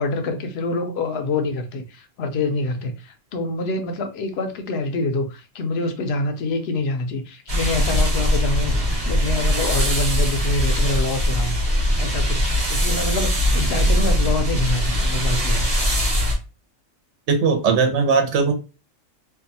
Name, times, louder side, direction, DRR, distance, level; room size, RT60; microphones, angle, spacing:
voice 1, 0.0-11.5 12.0-15.7, left 2 dB, 65° left, 0.8 m, -26 dB
sound 1, 7.5-16.3, equal, 35° right, 0.8 m, -21 dB
voice 2, 17.3-18.5, right 5 dB, 70° right, 0.9 m, -18 dB
2.6 x 2.3 x 2.6 m
omnidirectional pair, 1.2 m